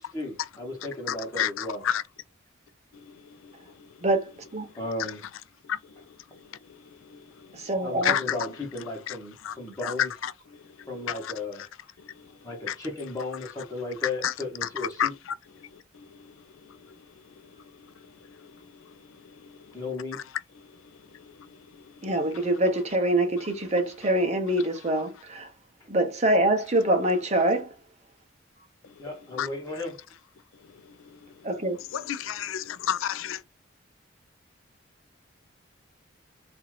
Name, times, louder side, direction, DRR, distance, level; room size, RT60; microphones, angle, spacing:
voice 1, 0.0-1.8 4.7-5.2 7.8-10.1 10.9-11.6 12.4-15.1 19.7-20.2 29.0-30.0, left 2 dB, 15° left, 1.0 m, -35 dB
voice 2, 1.1-2.0 2.9-3.5 3.8-3.9 5.6-5.9 6.7-7.6 8.0-8.4 9.1-9.2 9.4-9.6 9.8-10.3 10.6-11.3 12.2-12.3 12.7-12.8 14.2-14.3 14.6-15.3 15.6-16.4 16.6-17.0 17.8-19.0 19.2-19.7 20.1-20.2 21.1-21.8 29.4-29.5 30.8-31.5 31.9-33.4, left 10 dB, 85° left, 0.4 m, -32 dB
voice 3, 4.0-4.7 7.5-8.2 22.0-25.5 25.9-27.7 31.4-31.8, right 1 dB, 35° right, 0.7 m, -25 dB
2.7 x 2.4 x 3.1 m
head